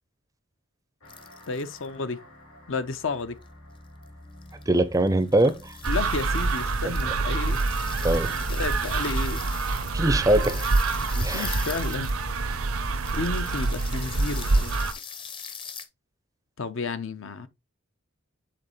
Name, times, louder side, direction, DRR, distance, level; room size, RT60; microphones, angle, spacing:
sound 1, 1.0-12.0, left 1 dB, 85° left, 3.5 m, -50 dB
sound 2, 1.1-1.9 3.4-3.5 4.0-4.1 4.4-4.7 4.9-12.5 12.9-15.9, left 7 dB, 25° left, 0.6 m, -41 dB
voice 1, 1.5-2.2 2.7-3.4 5.9-7.6 8.3-9.4 11.1-12.1 13.1-14.8 16.6-17.5, left 4 dB, 65° left, 0.7 m, -32 dB
voice 2, 4.7-5.8 8.0-8.3 9.9-10.7 11.2-11.5, right 1 dB, 15° right, 0.5 m, -22 dB
sound 3, 5.8-14.9, right 3 dB, 85° right, 0.8 m, -26 dB
7.8 x 4.2 x 3.0 m
head